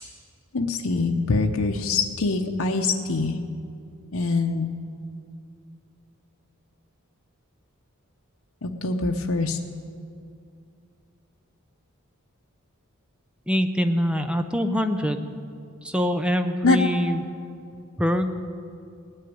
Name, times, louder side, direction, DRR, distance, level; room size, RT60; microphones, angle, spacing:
voice 1, 0.5-3.4 4.1-4.7 8.6-9.6 16.6-16.8, left 3 dB, 75° left, 3 dB, 0.8 m, -24 dB
voice 2, 13.5-15.3 15.8-17.2 18.0-18.3, equal, 5° right, 7 dB, 0.5 m, -24 dB
18.5 x 6.6 x 9.3 m, 2.4 s
head